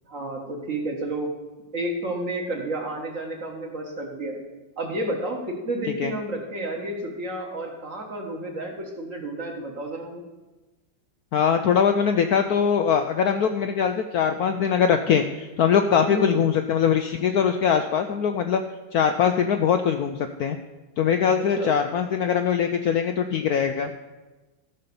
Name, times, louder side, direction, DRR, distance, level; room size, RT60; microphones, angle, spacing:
voice 1, 0.1-1.3 1.7-4.4 4.8-10.2 16.1-16.4 21.6-21.7, right 1 dB, 45° right, 1 dB, 1.8 m, -31 dB
voice 2, 11.3-18.6 18.9-20.6 21.0-23.9, left 7 dB, 70° left, 6 dB, 0.9 m, -22 dB
13.5 x 5.5 x 7.0 m, 1.2 s
omnidirectional pair, 2.1 m